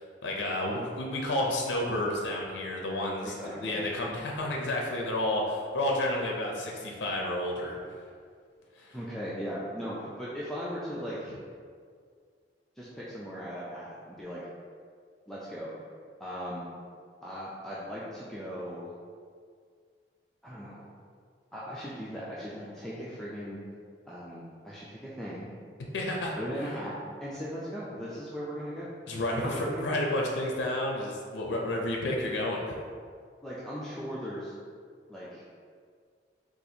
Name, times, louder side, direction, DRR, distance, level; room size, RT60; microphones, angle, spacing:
voice 1, 0.2-3.3 3.6-7.8 8.8-9.0 25.9-26.4 29.1-32.7, left 1 dB, 80° left, -1 dB, 0.4 m, -30 dB
voice 2, 3.2-3.8 8.9-11.3 12.8-14.4 15.3-15.7 16.2-16.6 17.2-18.9 20.4-20.8 21.5-23.6 24.1-25.5 26.3-26.9 27.2-28.9 29.3-29.9 33.4-34.5 35.1-35.4, equal, 5° left, -9 dB, 0.4 m, -38 dB
4.1 x 2.4 x 2.7 m, 2.1 s
head